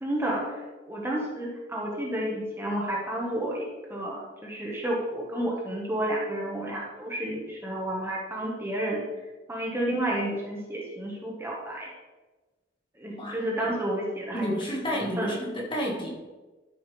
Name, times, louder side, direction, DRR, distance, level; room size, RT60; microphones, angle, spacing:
voice 1, 0.0-0.6 0.9-9.0 9.5-11.9 13.0-14.5 14.9-15.4, right 1 dB, 10° right, -4 dB, 1.4 m, -31 dB
voice 2, 14.3-16.1, equal, 25° left, -3 dB, 1.7 m, -30 dB
12.5 x 7.0 x 3.4 m, 1.2 s
head